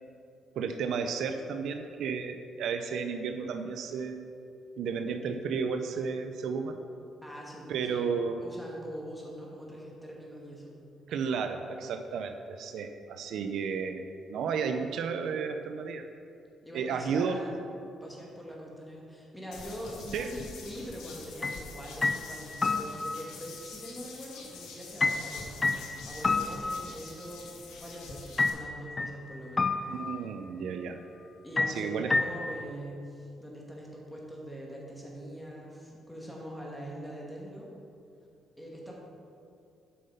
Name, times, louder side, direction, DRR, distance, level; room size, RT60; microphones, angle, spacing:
voice 1, 0.6-4.2 4.8-6.8 7.7-8.4 11.1-16.1 16.7-17.4 20.1-20.3 29.9-31.0 31.7-32.1, right 6 dB, 75° right, 7 dB, 0.5 m, -33 dB
voice 2, 7.2-8.0 8.4-10.8 16.6-17.6 18.0-29.7 31.4-37.7 38.6-38.9, equal, 5° left, -3 dB, 2.1 m, -43 dB
sound 1, 19.5-28.5, left 3 dB, 90° left, 1.4 m, -46 dB
sound 2, 21.4-21.7 22.0-23.4 25.0-27.3 28.4-29.2 29.6-30.4 31.6-32.6, left 3 dB, 30° left, 0.4 m, -30 dB
8.5 x 5.6 x 5.6 m, 2.6 s
cardioid pair, 90°, 0 cm